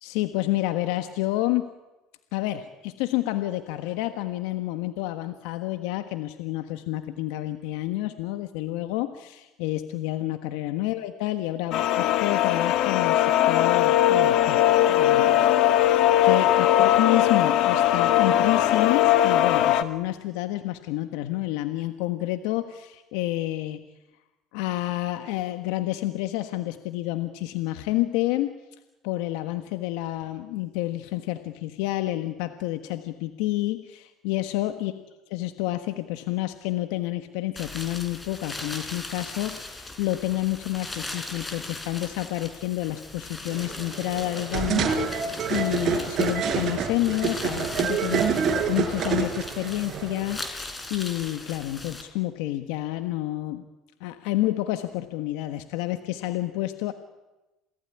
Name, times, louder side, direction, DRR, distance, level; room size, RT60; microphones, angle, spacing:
voice 1, 0.0-1.7 2.3-23.8 24.5-28.5 29.0-34.9 35.3-53.7 54.0-56.9, left 16 dB, 80° left, 9 dB, 1.4 m, -29 dB
sound 1, 11.7-19.8, left 12 dB, 60° left, 1.7 m, -20 dB
sound 2, 37.6-52.0, left 2 dB, 15° left, 4.6 m, -39 dB
sound 3, 43.5-50.4, right 6 dB, 50° right, 4.9 m, -27 dB
27.5 x 19.0 x 10.0 m, 1.0 s
supercardioid pair, 95°, 0 cm